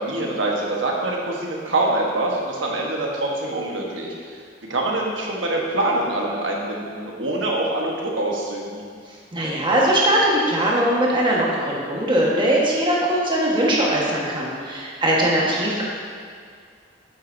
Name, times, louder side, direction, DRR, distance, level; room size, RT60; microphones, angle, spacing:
voice 1, 0.0-4.4 4.7-8.8 15.2-15.4, right 2 dB, 90° right, -2 dB, 1.3 m, -25 dB
voice 2, 9.3-15.8, right 1 dB, 25° right, -5 dB, 1.4 m, -20 dB
8.4 x 7.4 x 2.7 m, 2.2 s
head